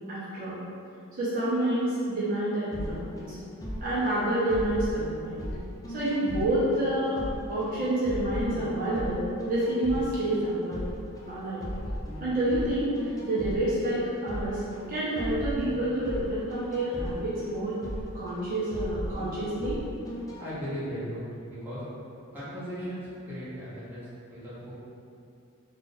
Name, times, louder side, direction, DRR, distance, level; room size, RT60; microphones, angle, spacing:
voice 1, 0.1-0.6 1.2-3.4 3.8-5.4 5.9-7.2 7.5-10.8 11.3-11.6 12.2-12.9 13.2-14.6 14.9-17.8 18.1-19.8, right 1 dB, 40° right, -10 dB, 0.7 m, -28 dB
sound 1, 2.7-20.4, equal, 15° left, 0.5 m, -37 dB
voice 2, 20.4-21.8 22.3-24.7, equal, 10° right, -12 dB, 1.0 m, -37 dB
2.5 x 2.4 x 4.0 m, 2.5 s
head